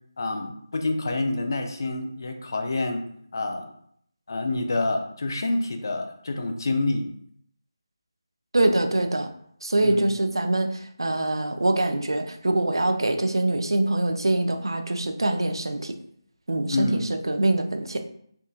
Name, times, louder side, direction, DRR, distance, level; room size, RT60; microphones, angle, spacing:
voice 1, 0.2-3.0 3.3-3.7 4.3-7.1 9.8-10.1 16.7-17.0, left 2 dB, 50° left, 4 dB, 0.5 m, -27 dB
voice 2, 8.5-9.3 9.6-15.9 16.5-18.0, right 2 dB, 75° right, 5 dB, 0.5 m, -24 dB
3.6 x 2.7 x 2.4 m, 0.67 s
figure-of-eight pair, 160°, 2 cm